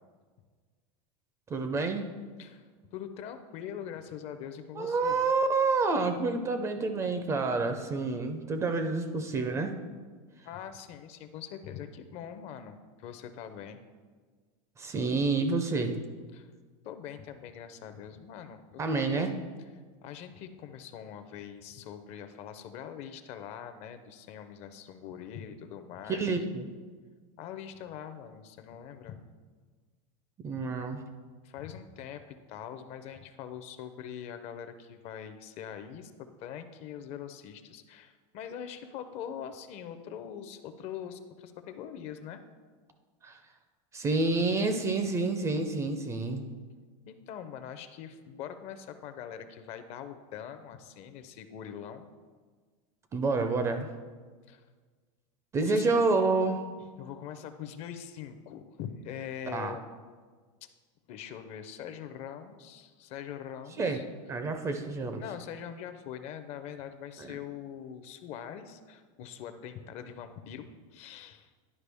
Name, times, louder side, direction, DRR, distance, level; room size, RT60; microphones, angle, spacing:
voice 1, 1.5-2.0 4.7-9.8 14.8-16.0 18.8-19.4 26.1-26.7 30.4-31.0 43.2-43.4 43.9-46.4 53.1-53.9 55.5-56.7 59.5-59.7 63.8-64.0 64.3-65.2 67.2-67.3, right 3 dB, 15° right, 7 dB, 0.4 m, -28 dB
voice 2, 2.4-5.2 10.4-13.8 16.3-16.5 16.8-19.3 20.0-26.4 27.4-29.2 31.4-36.1 36.4-42.4 47.1-52.1 54.5-54.6 55.6-55.9 57.0-59.8 61.1-64.0 65.1-71.5, left 9 dB, 40° left, 9 dB, 0.5 m, -43 dB
11.0 x 4.7 x 3.4 m, 1.5 s
supercardioid pair, 145°, 17 cm